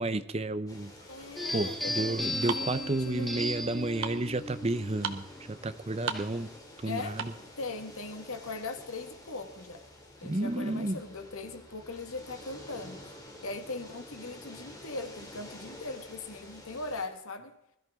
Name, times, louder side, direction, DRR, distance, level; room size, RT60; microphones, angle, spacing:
voice 1, 0.0-0.9 1.5-6.5 6.8-7.3 10.2-11.0, right 2 dB, 30° right, 0.6 m, -31 dB
sound 1, 0.7-17.1, left 1 dB, 15° left, 2.6 m, -50 dB
voice 2, 1.1-3.3 6.8-7.2 7.6-9.8 10.2-13.1 13.4-17.6, left 3 dB, 85° left, 1.6 m, -40 dB
sound 2, 1.3-7.5, right 5 dB, 70° right, 1.2 m, -39 dB
sound 3, 1.4-6.6, left 1 dB, ahead, 1.3 m, -37 dB
21.5 x 13.5 x 3.6 m
head